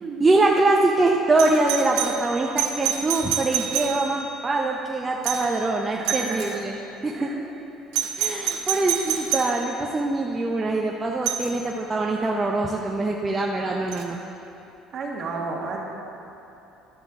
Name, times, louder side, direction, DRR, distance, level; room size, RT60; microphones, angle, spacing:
voice 1, 0.2-7.3 8.2-14.2, right 2 dB, 15° right, -1 dB, 0.5 m, -23 dB
Doorbell, 1.4-4.3 5.2-5.6 6.0-6.6 7.9-9.6 11.3-11.5 13.9-14.0, right 9 dB, 90° right, 0.8 m, -28 dB
voice 2, 6.0-6.6 7.1-7.4 14.9-15.8, right 4 dB, 45° right, -1 dB, 1.5 m, -32 dB
12.0 x 8.2 x 3.6 m, 2.8 s
cardioid pair, 140°, 0 cm